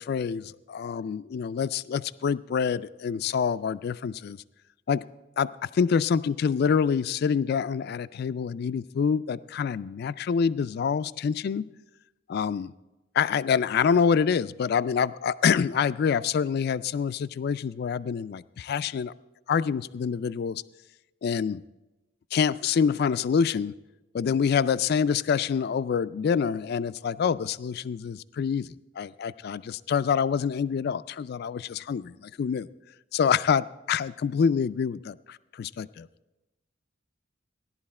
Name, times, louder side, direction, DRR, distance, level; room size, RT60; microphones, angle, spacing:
voice 1, 0.0-4.4 4.9-5.1 5.4-11.7 12.3-12.7 13.1-19.1 19.5-20.6 21.2-21.6 22.3-23.7 24.1-32.7 33.1-36.1, left 6 dB, 55° left, 16 dB, 0.3 m, -26 dB
16.0 x 11.0 x 4.3 m, 1.0 s
head